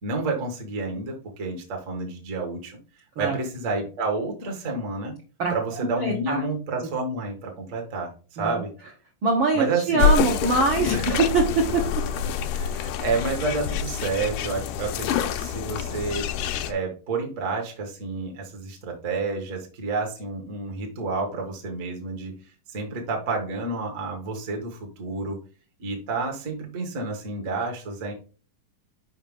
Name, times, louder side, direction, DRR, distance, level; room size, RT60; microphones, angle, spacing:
voice 1, 0.0-2.8 3.2-5.1 5.5-8.7 9.5-10.1 10.9-11.2 11.6-11.7 12.1-16.3 16.7-22.4 22.7-25.4 25.8-28.1, right 3 dB, 50° right, 1 dB, 0.9 m, -30 dB
voice 2, 6.0-6.4 8.4-8.6 9.2-12.0, right 3 dB, 70° right, 0 dB, 1.2 m, -23 dB
sound 1, 10.0-16.7, left 7 dB, 80° left, 2.0 m, -26 dB
5.7 x 5.3 x 3.5 m, 0.36 s
omnidirectional pair, 3.9 m